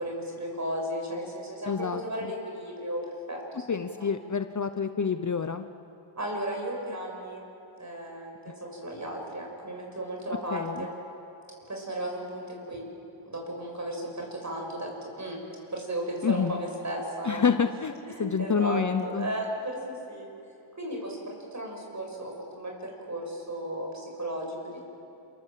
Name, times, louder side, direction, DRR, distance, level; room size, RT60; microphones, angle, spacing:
voice 1, 0.0-1.7 2.0-3.0 3.3-3.6 4.0-4.1 6.2-7.5 7.8-10.9 11.7-12.8 13.2-14.9 15.2-15.4 15.7-17.4 18.1-20.3 20.8-24.8, right 1 dB, 35° right, 0 dB, 6.8 m, -35 dB
voice 2, 1.7-2.3 3.7-5.7 10.5-10.9 16.2-16.6 17.2-17.9 18.2-19.3, left 6 dB, 35° left, 9 dB, 0.8 m, -28 dB
28.5 x 23.0 x 7.6 m, 2.8 s
wide cardioid pair, 95°, 49 cm